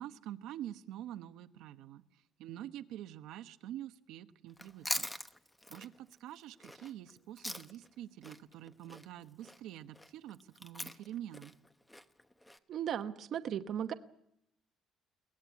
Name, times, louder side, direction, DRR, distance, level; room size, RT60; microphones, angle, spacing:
voice 1, 0.0-2.0 2.4-5.1 5.7-11.5, right 12 dB, 90° right, 8 dB, 1.1 m, -46 dB
Chewing mastication, 4.5-7.9 8.2-12.6, left 1 dB, 5° left, 1.0 m, -43 dB
voice 2, 12.7-13.9, right 9 dB, 50° right, 9 dB, 1.1 m, -36 dB
23.0 x 19.0 x 8.4 m, 0.76 s
cardioid pair, 160°, 0 cm